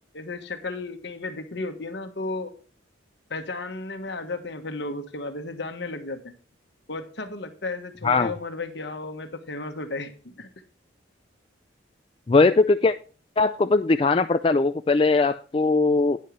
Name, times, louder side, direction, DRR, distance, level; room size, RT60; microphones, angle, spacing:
voice 1, 0.1-2.5 3.3-6.2 6.9-10.1 10.4-10.5, left 3 dB, 60° left, 6 dB, 1.4 m, -34 dB
voice 2, 12.3-12.9 13.4-16.2, left 3 dB, 30° left, 8 dB, 0.4 m, -20 dB
11.0 x 9.7 x 3.2 m, 0.37 s
head